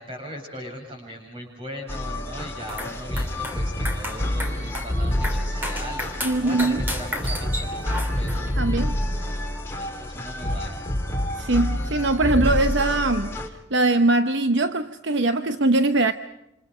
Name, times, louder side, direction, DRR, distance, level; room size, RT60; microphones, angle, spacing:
voice 1, 0.0-8.5 9.8-10.8, equal, 25° right, 7.9 m, -39 dB
sound 1, 1.9-13.5, left 1 dB, 10° left, 2.5 m, -28 dB
sound 2, 2.6-8.6, equal, 10° right, 2.8 m, -34 dB
voice 2, 6.2-6.8 8.6-8.9 11.4-13.4 13.7-16.1, right 2 dB, 60° right, 0.9 m, -21 dB
28.0 x 27.0 x 5.1 m
head